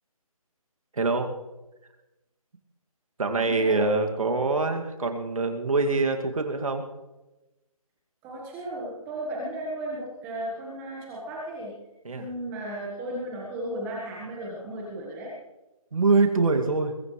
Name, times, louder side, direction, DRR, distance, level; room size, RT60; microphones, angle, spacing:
voice 1, 0.9-1.3 3.2-6.8 12.0-12.3 15.9-16.9, right 3 dB, 65° right, 4 dB, 2.4 m, -24 dB
voice 2, 3.4-3.8 8.2-11.7 12.1-15.3, right 1 dB, 10° right, -4 dB, 1.5 m, -35 dB
22.5 x 15.0 x 3.3 m, 1.0 s
figure-of-eight pair, 165°, 19 cm